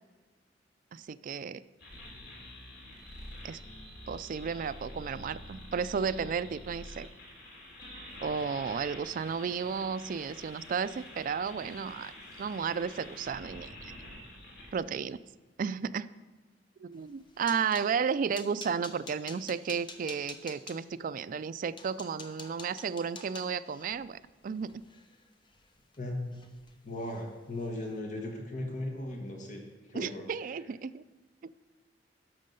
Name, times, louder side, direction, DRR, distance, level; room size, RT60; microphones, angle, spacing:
voice 1, 0.9-1.6 3.4-3.6 4.1-7.1 8.2-12.1 12.4-13.9 14.7-15.2 15.6-16.1 16.8-24.8 29.9-31.0, right 6 dB, 50° right, 13 dB, 0.3 m, -33 dB
sound 1, 1.8-14.7, left 1 dB, 65° left, 2.8 m, -47 dB
sound 2, 17.0-17.9 18.3-20.8 21.4-21.5 21.8-26.0 26.3-26.7 27.0-27.2 27.6-27.8, left 4 dB, 25° left, 0.8 m, -48 dB
voice 2, 26.0-26.4 26.8-29.6 29.9-30.2, left 1 dB, 45° left, 2 dB, 1.3 m, -37 dB
12.0 x 6.3 x 5.3 m, 1.2 s
head